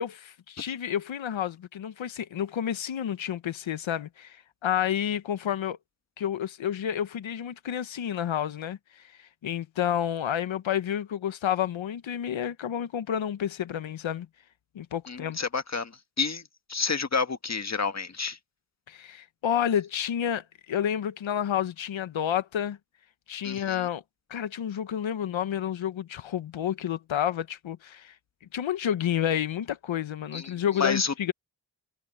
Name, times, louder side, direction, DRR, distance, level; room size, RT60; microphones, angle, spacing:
voice 1, 0.0-5.8 6.2-14.3 14.7-15.4 18.9-22.8 23.3-24.0 24.3-28.1 28.5-31.3, left 9 dB, 90° left, 0.9 m, -30 dB
voice 2, 15.1-15.9 16.2-16.4 16.7-18.4 23.4-23.9 30.3-31.1, left 5 dB, 35° left, 1.5 m, -29 dB
cardioid pair, 60°, 45 cm